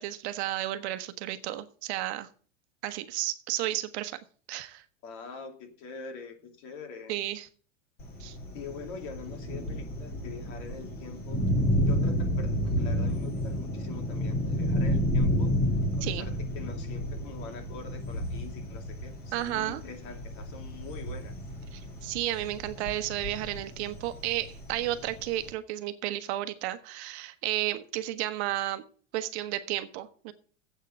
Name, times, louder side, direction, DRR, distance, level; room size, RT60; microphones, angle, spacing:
voice 1, 0.0-2.3 2.8-4.2 4.5-4.8 7.1-7.5 8.2-8.4 16.0-16.3 19.3-19.8 21.7-28.8 29.1-30.3, right 14 dB, 60° right, 1.2 m, -32 dB
voice 2, 5.0-7.2 8.5-11.4 11.9-15.6 16.0-21.4, left 5 dB, 50° left, 2.6 m, -44 dB
Thunder, 8.0-25.5, equal, 25° left, 2.1 m, -31 dB
8.2 x 6.6 x 8.3 m
supercardioid pair, 140°, 37 cm